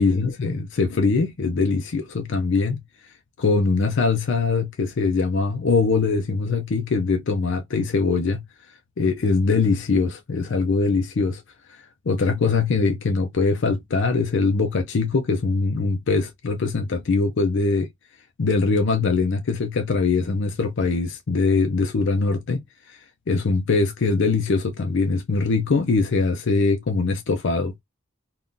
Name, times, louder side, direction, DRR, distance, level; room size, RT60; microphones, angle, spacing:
voice 1, 0.0-2.8 3.4-8.4 9.0-11.4 11.7-17.9 18.4-22.6 22.9-23.0 23.3-27.8, left 4 dB, 55° left, 0.5 m, -22 dB
2.6 x 2.4 x 3.6 m
head